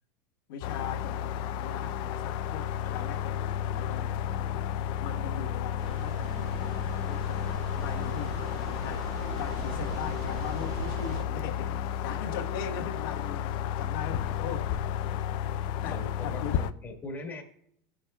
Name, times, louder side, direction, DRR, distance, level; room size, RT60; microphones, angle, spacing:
voice 1, 0.5-1.3 1.6-4.5 5.0-9.0 9.4-14.8 15.8-16.6, left 6 dB, 85° left, 1.3 m, -40 dB
sound 1, 0.6-16.7, left 9 dB, 45° left, 0.4 m, -32 dB
sound 2, 5.8-11.3, right 3 dB, 55° right, 1.7 m, -40 dB
voice 2, 15.8-17.4, left 2 dB, 15° left, 1.3 m, -41 dB
16.5 x 6.4 x 2.2 m
supercardioid pair, 150°, 12 cm